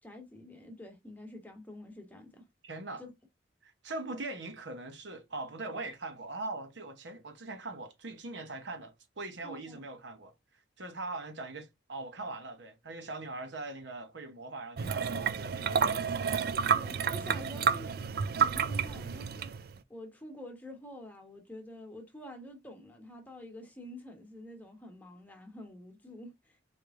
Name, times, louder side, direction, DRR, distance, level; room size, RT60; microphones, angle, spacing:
voice 1, 0.0-2.5 3.0-3.1 9.4-9.8 15.9-16.0 16.7-19.5 19.9-26.6, left 1 dB, 10° left, 1.2 m, -48 dB
voice 2, 2.6-3.0 3.6-10.3 10.8-16.3 17.6-17.7, right 2 dB, 70° right, 1.0 m, -41 dB
sound 1, 14.8-19.8, right 6 dB, 55° right, 0.4 m, -30 dB
4.5 x 3.2 x 3.6 m
head